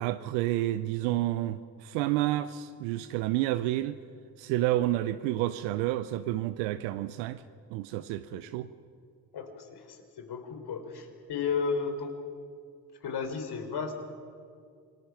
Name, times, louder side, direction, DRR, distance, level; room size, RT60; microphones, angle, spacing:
voice 1, 0.0-4.0 4.4-7.4 7.7-8.7, right 15 dB, 85° right, 12 dB, 0.7 m, -30 dB
voice 2, 9.3-12.1 13.0-14.0, left 5 dB, 60° left, 6 dB, 3.9 m, -33 dB
28.0 x 19.5 x 5.9 m, 2.2 s
hypercardioid pair, 55°, 44 cm